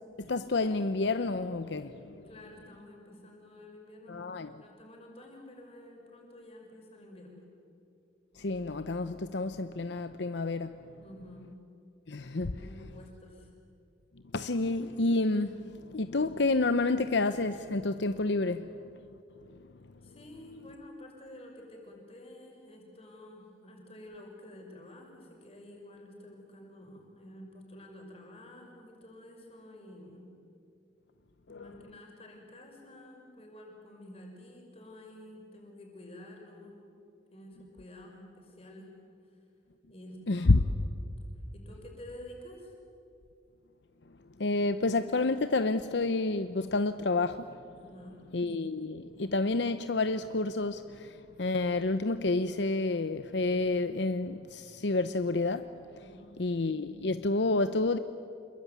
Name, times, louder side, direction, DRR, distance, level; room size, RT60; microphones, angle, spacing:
voice 1, 0.2-2.3 4.1-4.5 8.4-10.8 12.1-12.6 14.3-18.9 19.5-19.7 31.5-31.7 40.3-40.7 44.4-47.6 48.3-55.7 56.4-58.0, left 3 dB, 70° left, 0.8 m, -29 dB
voice 2, 2.2-7.4 11.0-11.5 12.5-13.5 20.0-30.2 31.5-36.8 37.3-38.9 39.9-40.6 41.5-42.7 47.7-48.2 55.9-56.4, left 1 dB, 30° left, 5.9 m, -50 dB
27.0 x 22.0 x 9.4 m
head